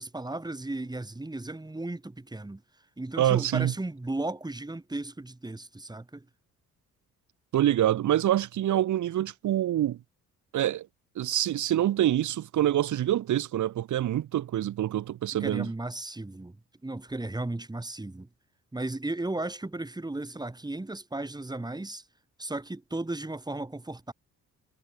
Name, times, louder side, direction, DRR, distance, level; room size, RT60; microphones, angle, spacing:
voice 1, 0.0-2.6 3.0-6.3 15.4-16.6 16.8-18.3 18.7-22.0 22.4-24.1, right 2 dB, 15° right, 6.9 m, -35 dB
voice 2, 3.2-3.7 7.5-10.0 10.5-10.9 11.2-15.7, right 12 dB, 75° right, 4.2 m, -26 dB
cardioid pair, 90°, 30 cm